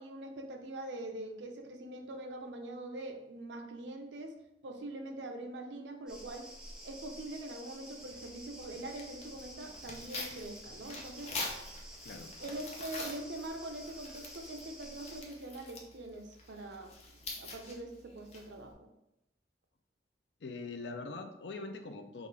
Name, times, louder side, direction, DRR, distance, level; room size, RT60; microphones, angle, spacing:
voice 1, 0.0-4.4 4.6-6.5 6.8-11.4 12.4-18.9, right 1 dB, 85° right, 4 dB, 0.6 m, -43 dB
sound 1, 6.1-15.2, equal, 5° right, 0.7 m, -50 dB
Tearing, 8.0-18.7, left 2 dB, 40° left, 0.7 m, -46 dB
voice 2, 20.4-22.3, left 3 dB, 75° left, 7 dB, 0.5 m, -42 dB
5.4 x 2.5 x 3.2 m, 0.87 s
head